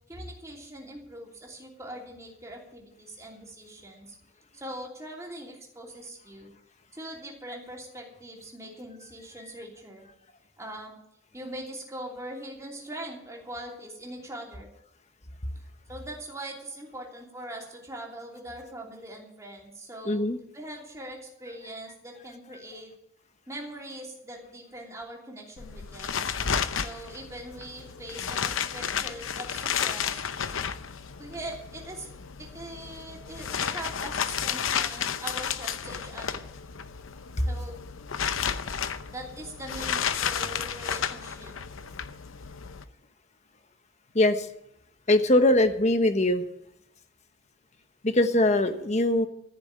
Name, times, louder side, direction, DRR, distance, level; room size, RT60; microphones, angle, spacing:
voice 1, 0.1-4.1 4.5-6.5 6.9-10.0 10.6-10.9 11.3-14.7 15.5-20.2 20.5-22.9 23.5-26.2 26.7-30.2 31.2-32.1 32.4-36.5 37.5-37.8 39.1-41.5, right 1 dB, 15° right, -1 dB, 3.0 m, -42 dB
voice 2, 20.1-20.4 44.1-44.5 45.1-46.4 48.0-49.3, left 1 dB, 35° left, 8 dB, 1.1 m, -22 dB
sound 1, 25.6-42.8, left 7 dB, 85° left, 0.7 m, -32 dB
14.5 x 6.9 x 8.8 m, 0.79 s
head